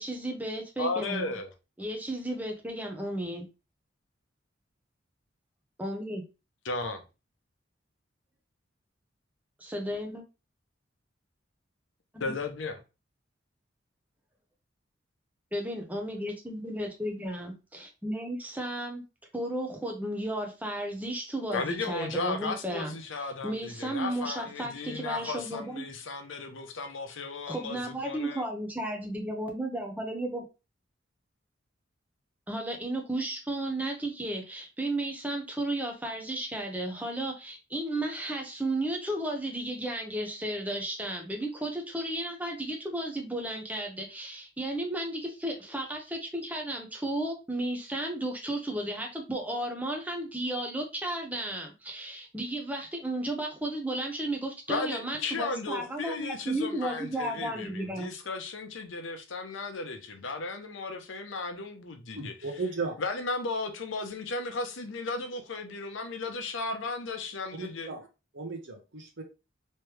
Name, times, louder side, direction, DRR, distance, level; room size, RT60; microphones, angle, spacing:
voice 1, 0.0-1.3 1.8-3.5 5.8-6.2 9.6-10.2 12.1-12.3 15.5-19.0 19.3-22.9 23.4-25.8 27.5-30.4 32.5-58.1, right 1 dB, 10° right, 0.8 m, -34 dB
voice 2, 0.8-1.5 6.6-7.0 12.2-12.8 21.5-28.4 54.7-62.3 63.0-67.9, left 3 dB, 90° left, 0.8 m, -35 dB
voice 3, 62.2-63.0 67.5-68.1 68.3-69.2, right 3 dB, 75° right, 1.0 m, -36 dB
3.2 x 3.2 x 3.1 m
head